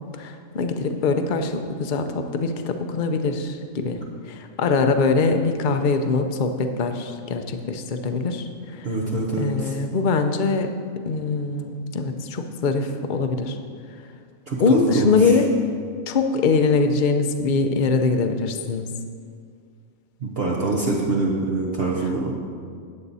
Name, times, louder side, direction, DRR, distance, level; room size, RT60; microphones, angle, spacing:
voice 1, 0.1-8.9 9.4-10.7 11.1-13.6 14.6-15.5 16.1-18.9, left 4 dB, 45° left, 6 dB, 0.8 m, -23 dB
voice 2, 8.8-9.7 14.5-15.4 20.2-22.3, right 3 dB, 50° right, -3 dB, 1.2 m, -25 dB
14.0 x 8.7 x 4.1 m, 2.2 s
omnidirectional pair, 1.4 m